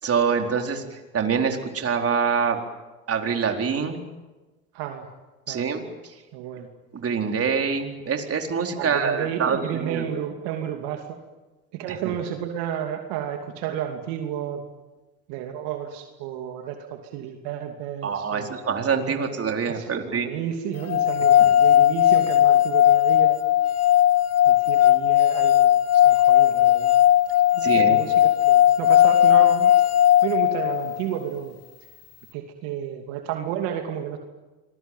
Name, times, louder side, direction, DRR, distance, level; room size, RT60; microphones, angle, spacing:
voice 1, 0.0-2.6 3.1-4.0 5.5-5.8 6.9-10.0 18.0-20.3 27.6-28.0, right 6 dB, 30° right, 3 dB, 4.2 m, -25 dB
voice 2, 4.7-5.1 5.5-5.7 6.3-6.7 8.8-11.2 11.7-14.6 15.3-18.6 19.1-19.3 19.7-23.4 24.5-27.0 27.5-29.7 30.2-31.5 32.3-34.2, right 9 dB, 65° right, 4 dB, 2.8 m, -32 dB
sound 1, 20.9-31.0, left 12 dB, 35° left, 1.2 m, -17 dB
26.5 x 21.5 x 9.2 m, 1.2 s
hypercardioid pair, 80°, 43 cm